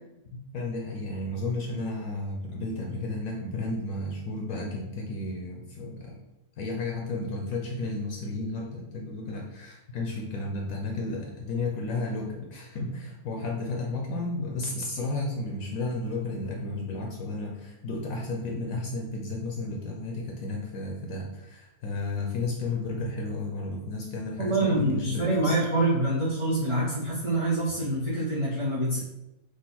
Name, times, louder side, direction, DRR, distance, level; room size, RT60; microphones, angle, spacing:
voice 1, 0.5-6.1 6.6-25.5, left 2 dB, 70° left, 0 dB, 1.0 m, -33 dB
voice 2, 24.4-29.0, right 1 dB, 30° right, -7 dB, 0.6 m, -26 dB
3.8 x 2.5 x 4.1 m, 0.93 s
omnidirectional pair, 1.6 m